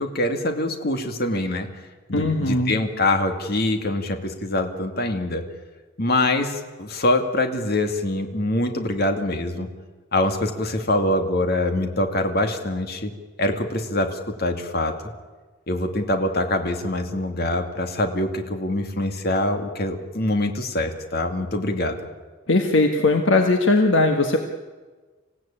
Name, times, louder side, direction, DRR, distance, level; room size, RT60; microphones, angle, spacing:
voice 1, 0.0-1.7 2.1-5.4 6.0-9.7 10.1-13.1 13.4-14.9 15.7-22.1, left 1 dB, 50° left, 6 dB, 2.3 m, -24 dB
voice 2, 2.1-2.7 22.5-24.4, left 2 dB, 65° left, 4 dB, 1.5 m, -19 dB
27.0 x 16.0 x 8.9 m, 1.3 s
head